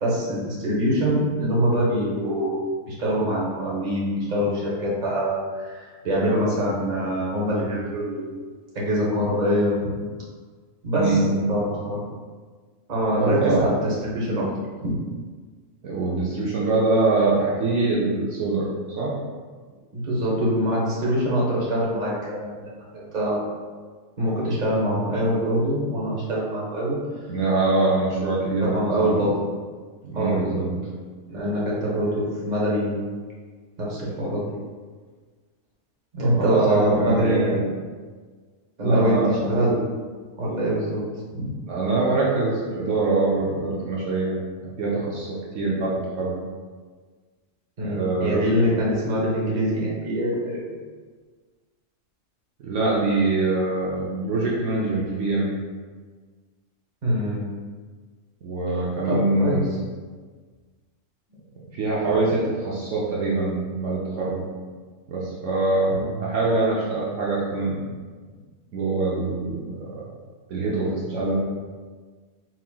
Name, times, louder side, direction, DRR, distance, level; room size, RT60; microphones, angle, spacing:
voice 1, 0.0-2.6 2.9-8.2 8.7-10.0 10.8-11.2 11.5-12.0 12.9-13.7 14.1-14.5 14.8-14.9 19.9-23.4 24.2-27.0 28.6-29.3 30.1-30.7 31.3-33.0 33.8-34.4 36.1-37.6 38.8-39.1 39.5-39.8 40.4-41.0 41.3-41.5 47.8-50.6 57.0-57.5 59.0-59.6 65.9-66.1, equal, 40° right, -6 dB, 1.1 m, -24 dB
voice 2, 10.8-11.5 11.9-12.0 13.2-13.7 15.8-18.7 19.0-19.1 27.3-29.4 30.0-30.8 36.2-37.6 38.8-39.6 41.7-44.4 44.6-46.4 47.8-48.4 52.6-55.6 58.4-59.8 61.7-64.5 65.1-67.9 68.7-69.9 70.5-71.4, right 3 dB, 70° right, -5 dB, 1.0 m, -24 dB
4.3 x 4.1 x 2.2 m, 1.5 s
omnidirectional pair, 1.4 m